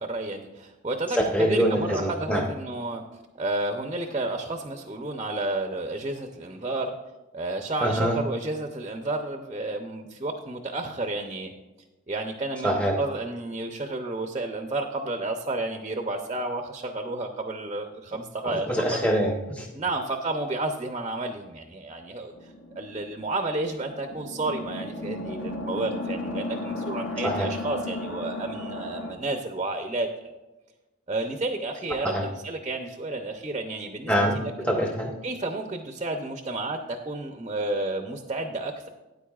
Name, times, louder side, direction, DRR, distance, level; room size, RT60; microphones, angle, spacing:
voice 1, 0.0-3.0 3.4-6.9 7.3-11.5 12.1-18.7 19.7-30.1 31.1-34.5 35.2-38.9, right 2 dB, 25° right, 5 dB, 0.5 m, -31 dB
voice 2, 1.1-2.4 7.8-8.2 12.6-13.0 18.4-19.7 27.2-27.5 32.0-32.2 34.1-35.1, equal, 5° left, 1 dB, 0.8 m, -25 dB
sound 1, 22.3-29.1, left 2 dB, 60° left, 1.2 m, -35 dB
13.0 x 9.4 x 2.4 m, 1.1 s
head